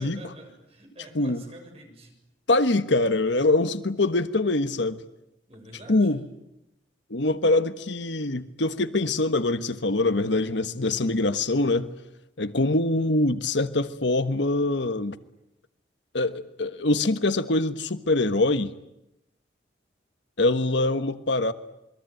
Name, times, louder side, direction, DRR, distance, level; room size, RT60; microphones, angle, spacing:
voice 1, 0.0-2.1 5.5-6.2, right 1 dB, 30° right, 3 dB, 7.0 m, -46 dB
voice 2, 2.5-5.0 5.9-6.2 7.1-11.9 12.4-15.2 16.1-18.7 20.4-21.5, left 2 dB, 75° left, 11 dB, 1.4 m, -24 dB
27.5 x 22.5 x 9.2 m, 0.88 s
head